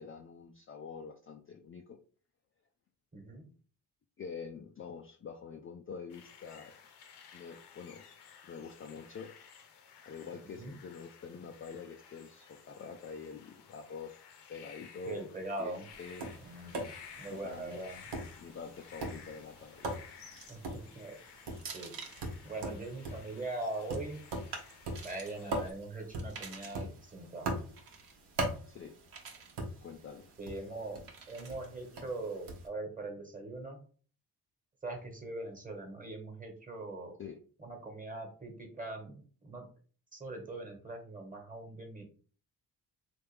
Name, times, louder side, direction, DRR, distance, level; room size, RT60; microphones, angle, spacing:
voice 1, 0.0-2.0 4.2-6.8 7.3-8.0 8.4-9.3 10.1-14.2 14.5-15.3 15.6-16.2 17.3-18.0 18.4-19.9 28.7-28.9 29.8-30.3 37.2-37.4, left 5 dB, 30° left, 3 dB, 0.4 m, -46 dB
voice 2, 3.1-3.4 10.5-10.7 15.0-15.8 16.4-16.8 17.2-18.0 20.5-21.1 21.7-21.9 22.4-24.2 25.0-27.5 30.4-31.0 31.3-33.8 34.8-37.1 37.6-39.7 40.1-42.0, right 2 dB, 20° right, 2 dB, 1.3 m, -41 dB
sound 1, 6.1-25.7, left 7 dB, 70° left, 0.8 m, -55 dB
Tap, 15.9-32.7, right 1 dB, 80° right, 1.1 m, -42 dB
Pieces falling on wood table, 20.3-20.7 21.6-22.3 23.6-24.0 24.6-25.3 26.2-26.9 27.8-28.1 29.1-29.5 31.1-31.7, right 5 dB, 55° right, 1.0 m, -48 dB
3.3 x 2.6 x 3.2 m, 0.41 s
cardioid pair, 85°, 42 cm